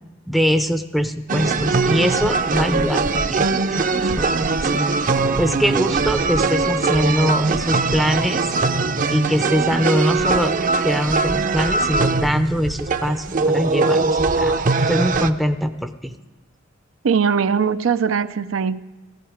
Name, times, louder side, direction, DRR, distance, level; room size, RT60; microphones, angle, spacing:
voice 1, 0.3-8.5 9.1-10.6 10.8-16.1, equal, ahead, 0.5 m, -23 dB
sound 1, 1.3-15.3, right 3 dB, 45° right, 0.6 m, -21 dB
voice 2, 17.0-18.8, right 6 dB, 85° right, 0.5 m, -20 dB
16.5 x 14.5 x 5.0 m
head